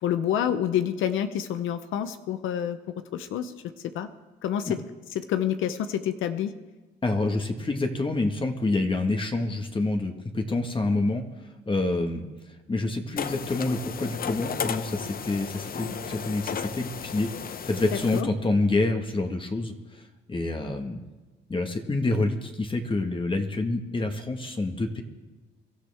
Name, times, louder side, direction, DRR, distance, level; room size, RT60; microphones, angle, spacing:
voice 1, 0.0-2.8 3.1-3.5 3.9-4.1 4.4-4.8 5.1-6.5 18.1-18.3, left 10 dB, 85° left, 10 dB, 0.9 m, -27 dB
voice 2, 7.0-11.2 11.7-12.3 12.7-21.0 21.5-25.0, left 2 dB, 25° left, 5 dB, 1.6 m, -27 dB
sound 1, 13.2-18.2, left 7 dB, 50° left, 0.8 m, -34 dB
24.0 x 13.0 x 3.5 m, 1.2 s
cardioid pair, 90°, 20 cm